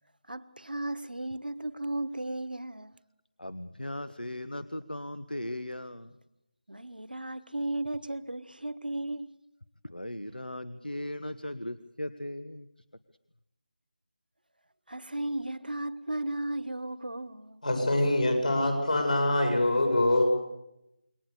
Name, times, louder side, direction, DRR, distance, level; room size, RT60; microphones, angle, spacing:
voice 1, 0.3-2.9 6.7-9.3 14.9-17.6, right 1 dB, 75° right, 1.4 m, -35 dB
voice 2, 3.4-6.1 9.8-12.7, left 1 dB, 85° left, 1.3 m, -38 dB
voice 3, 17.6-20.2, left 1 dB, 55° left, 7.4 m, -24 dB
27.5 x 23.0 x 7.0 m
figure-of-eight pair, 160°, 5 cm